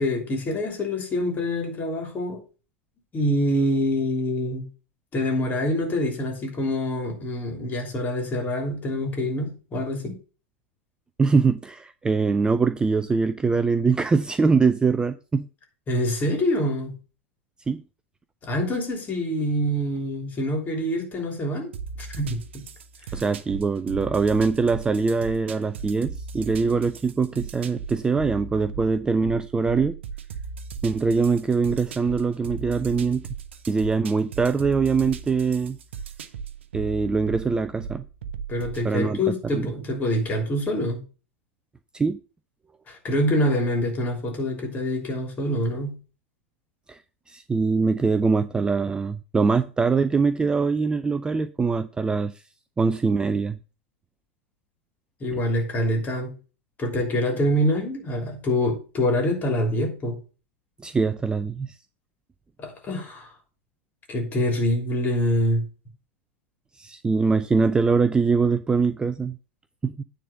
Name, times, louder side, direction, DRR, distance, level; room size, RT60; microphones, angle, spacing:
voice 1, 0.0-2.4 3.1-4.6 5.1-10.2 15.9-16.9 18.4-21.7 22.0-22.6 38.5-41.0 42.9-46.0 55.2-56.3 56.8-60.2 62.6-63.3 64.1-65.7, left 1 dB, 25° left, 3.2 m, -25 dB
voice 2, 11.2-15.5 17.7-17.8 23.1-30.0 30.8-33.2 33.7-35.8 36.7-38.0 38.8-39.2 39.5-39.7 41.9-42.2 46.9-47.0 47.3-52.3 52.8-53.6 60.8-61.7 66.8-69.4 69.8-70.0, right 4 dB, 10° right, 0.4 m, -23 dB
sound 1, 21.7-38.9, right 6 dB, 65° right, 0.8 m, -37 dB
9.4 x 3.9 x 6.8 m
figure-of-eight pair, 90°, 7 cm